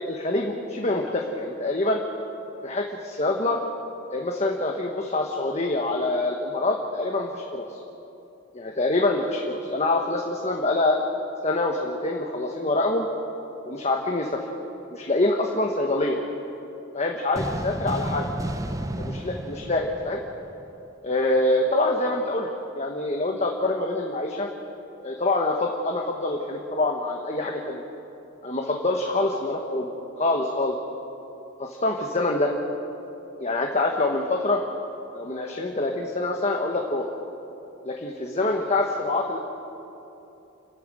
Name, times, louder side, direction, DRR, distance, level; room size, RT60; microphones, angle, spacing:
voice 1, 0.0-2.0 2.6-3.6 4.1-7.8 8.5-11.0 11.4-13.1 13.7-14.4 14.9-16.2 16.9-18.3 19.0-20.2 21.0-22.5 22.7-24.5 25.0-27.8 28.4-29.9 30.2-30.8 31.6-32.5 33.4-34.6 35.1-37.1 37.8-39.4, left 2 dB, 35° left, 1 dB, 1.3 m, -25 dB
sound 1, 17.4-20.8, right 1 dB, 15° right, 0.8 m, -32 dB
30.0 x 11.5 x 7.6 m, 3.0 s
head